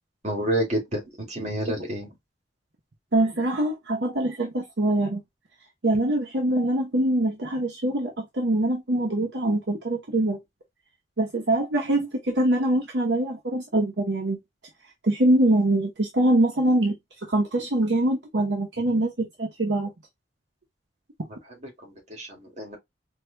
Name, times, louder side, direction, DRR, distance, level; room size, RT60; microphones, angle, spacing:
voice 1, 0.2-2.2 21.2-22.8, right 1 dB, 40° right, 2.0 m, -30 dB
voice 2, 3.1-5.2 5.8-10.4 11.2-14.4 15.0-16.9 17.3-19.1 19.4-19.9, right 1 dB, 65° right, 0.8 m, -23 dB
4.7 x 2.7 x 2.2 m
head